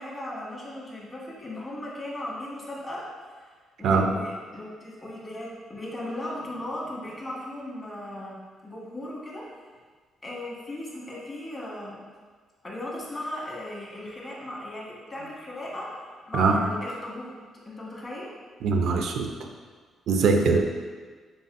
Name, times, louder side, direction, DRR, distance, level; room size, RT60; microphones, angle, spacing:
voice 1, 0.0-3.0 3.8-8.3 8.6-9.4 10.2-12.0 12.6-17.3 17.6-18.3, left 1 dB, 35° left, -4 dB, 1.2 m, -37 dB
voice 2, 18.6-19.3 20.1-20.6, right 4 dB, 70° right, 4 dB, 0.3 m, -21 dB
4.1 x 3.6 x 2.4 m, 1.5 s
cardioid pair, 90°, 0 cm